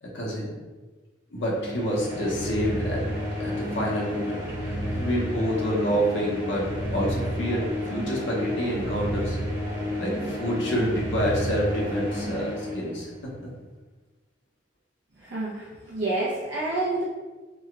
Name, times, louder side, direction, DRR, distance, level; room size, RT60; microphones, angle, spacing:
voice 1, 0.0-0.5 1.3-3.0 3.4-4.4 4.6-6.6 6.9-9.4 10.0-13.5, equal, 80° left, -3 dB, 1.1 m, -28 dB
sound 1, 1.5-13.3, equal, 70° right, 1.4 m, -31 dB
voice 2, 15.2-17.0, right 2 dB, 90° right, -7 dB, 0.8 m, -28 dB
4.3 x 2.3 x 3.3 m, 1.3 s
head